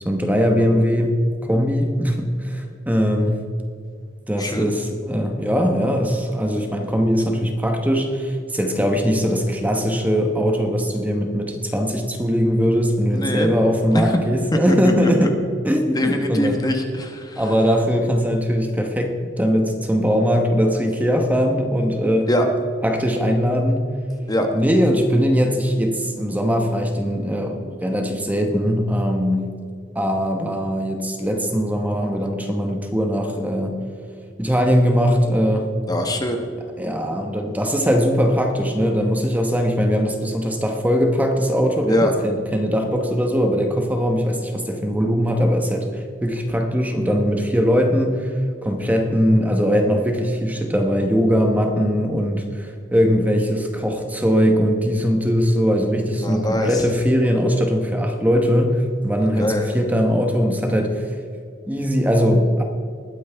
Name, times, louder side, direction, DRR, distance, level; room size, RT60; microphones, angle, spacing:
voice 1, 0.0-1.2 1.4-3.4 4.3-15.3 15.6-16.6 17.4-22.3 22.8-23.8 24.5-29.5 29.9-33.8 34.4-35.7 36.8-61.2 61.7-62.6, equal, 10° right, 3 dB, 1.0 m, -20 dB
voice 2, 13.1-13.5 13.9-14.1 14.7-14.9 15.2-15.3 15.9-17.4 22.3-22.5 24.3-24.5 35.9-36.4 41.9-42.1 56.1-56.8 59.4-59.7, left 1 dB, 20° left, 4 dB, 1.1 m, -23 dB
20.0 x 9.3 x 3.5 m, 2.3 s
head